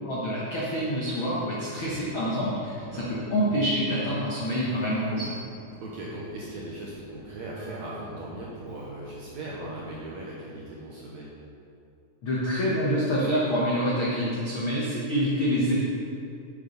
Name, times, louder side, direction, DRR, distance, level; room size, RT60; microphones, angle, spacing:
voice 1, 0.0-5.4 12.2-15.7, equal, 85° left, -6 dB, 1.1 m, -27 dB
voice 2, 1.7-2.0 2.9-3.1 5.8-11.3, right 1 dB, 65° right, -5 dB, 1.8 m, -39 dB
Keyboard (musical), 2.5-10.3, right 3 dB, 40° right, 1.9 m, -47 dB
8.6 x 8.2 x 5.4 m, 2.6 s
omnidirectional pair, 4.5 m